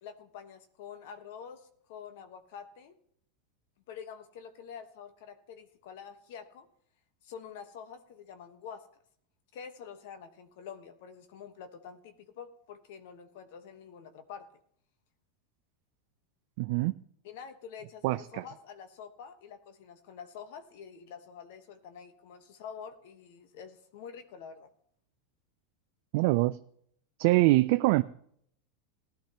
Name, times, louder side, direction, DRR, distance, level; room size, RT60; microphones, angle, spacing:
voice 1, 0.0-2.9 3.9-6.7 7.2-8.9 9.5-14.5 17.2-24.7, left 7 dB, 65° left, 9 dB, 1.2 m, -47 dB
voice 2, 16.6-16.9 18.0-18.4 26.1-26.6 27.2-28.0, right 20 dB, 60° right, 11 dB, 0.3 m, -24 dB
16.0 x 11.5 x 2.9 m, 0.67 s
hypercardioid pair, 110°, 0 cm